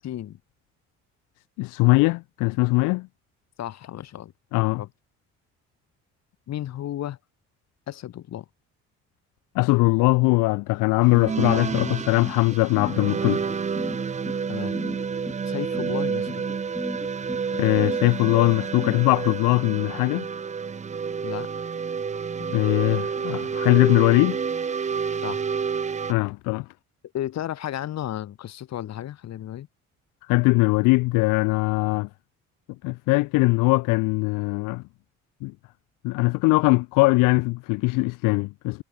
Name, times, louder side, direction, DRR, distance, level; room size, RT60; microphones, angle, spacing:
voice 1, 0.0-0.4 3.6-4.3 4.8-4.9 6.5-7.2 7.9-8.4 14.5-14.8 15.5-16.5 21.2-21.5 25.2-25.4 27.1-29.7, left 12 dB, 55° left, 1.1 m, -33 dB
voice 2, 1.6-3.1 4.5-4.8 9.5-13.4 17.5-20.3 22.5-24.4 26.1-26.7 30.3-32.1 32.8-34.8 35.4-35.5 36.0-38.8, left 24 dB, 85° left, 0.6 m, -21 dB
sound 1, 11.0-26.1, right 6 dB, 25° right, 0.6 m, -29 dB
sound 2, 11.7-19.4, left 2 dB, 10° left, 2.3 m, -36 dB
supercardioid pair, 75°, 31 cm